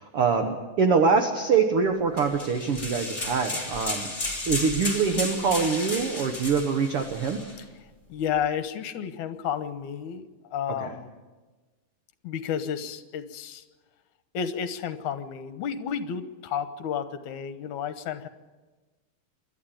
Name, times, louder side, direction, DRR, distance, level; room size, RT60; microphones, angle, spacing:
voice 1, 0.0-4.1 4.5-7.4 10.8-10.9, right 5 dB, 55° right, 5 dB, 1.6 m, -24 dB
sound 1, 2.2-7.6, left 2 dB, 15° left, 4.0 m, -33 dB
voice 2, 8.1-11.1 12.2-13.6 14.3-18.3, left 8 dB, 65° left, 10 dB, 2.2 m, -31 dB
27.5 x 12.0 x 9.0 m, 1.3 s
omnidirectional pair, 4.1 m